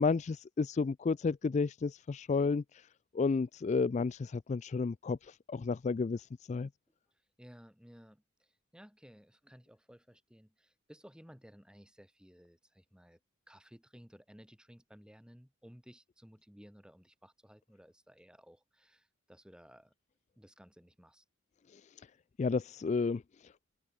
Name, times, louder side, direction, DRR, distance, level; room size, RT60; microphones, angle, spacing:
voice 1, 0.0-2.9 3.1-6.7 21.7-22.1 22.4-23.5, left 4 dB, 35° left, 0.3 m, -32 dB
voice 2, 7.4-8.5 8.7-13.2 13.5-19.9 20.4-21.2, equal, 5° right, 5.4 m, -57 dB
head